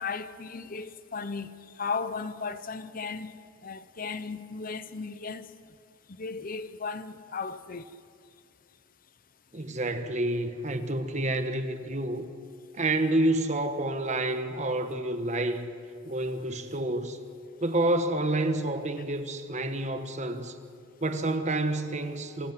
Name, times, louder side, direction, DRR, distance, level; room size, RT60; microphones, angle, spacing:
voice 1, 0.0-3.4 3.6-5.5 6.2-7.8, left 4 dB, 40° left, 0.8 m, -36 dB
voice 2, 9.5-12.3 12.7-15.7 16.0-17.2 17.6-20.6 21.0-22.5, right 1 dB, 35° right, 1.3 m, -29 dB
26.5 x 17.0 x 7.6 m
head